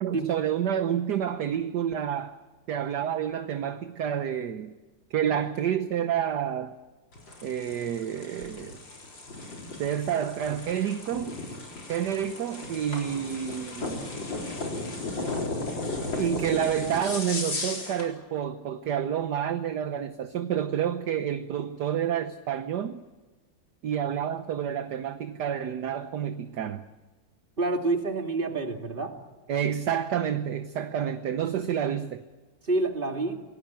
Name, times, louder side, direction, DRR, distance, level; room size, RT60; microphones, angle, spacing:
voice 1, 0.0-2.4 2.7-4.7 5.1-6.8 7.4-8.8 9.8-11.4 11.9-14.1 16.2-23.0 23.8-26.8 29.5-32.2, right 9 dB, 60° right, 9 dB, 1.3 m, -29 dB
sound 1, 7.1-18.1, left 2 dB, 55° left, 4.7 m, -35 dB
voice 2, 27.6-29.1 32.6-33.4, right 2 dB, 25° right, 4 dB, 2.7 m, -28 dB
26.5 x 18.5 x 8.8 m, 1.3 s
omnidirectional pair, 2.4 m